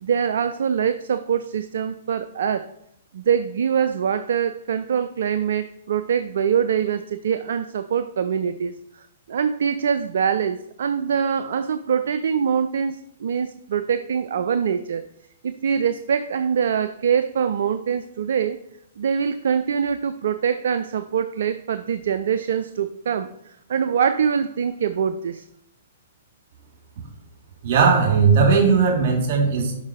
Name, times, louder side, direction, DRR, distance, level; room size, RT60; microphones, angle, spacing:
voice 1, 0.0-2.7 3.1-8.7 9.3-15.0 15.4-18.6 19.0-25.4, right 7 dB, 65° right, 11 dB, 0.4 m, -24 dB
voice 2, 27.6-29.8, right 5 dB, 45° right, 1 dB, 2.4 m, -17 dB
5.5 x 5.3 x 4.9 m, 0.77 s
figure-of-eight pair, 115°, 0 cm